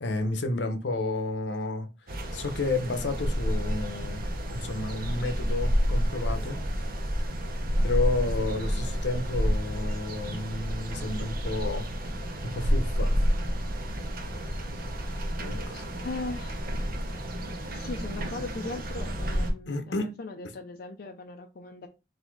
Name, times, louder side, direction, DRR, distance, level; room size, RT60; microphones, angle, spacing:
voice 1, 0.0-1.9 2.3-4.2 4.5-6.6 7.8-11.9 12.5-13.2 15.4-15.8 19.7-20.1, left 2 dB, 75° left, 0.8 m, -31 dB
sound 1, 2.1-19.5, equal, 55° right, 0.9 m, -30 dB
voice 2, 15.7-16.8 17.7-21.9, left 3 dB, 55° left, 0.5 m, -39 dB
4.1 x 2.6 x 4.6 m
head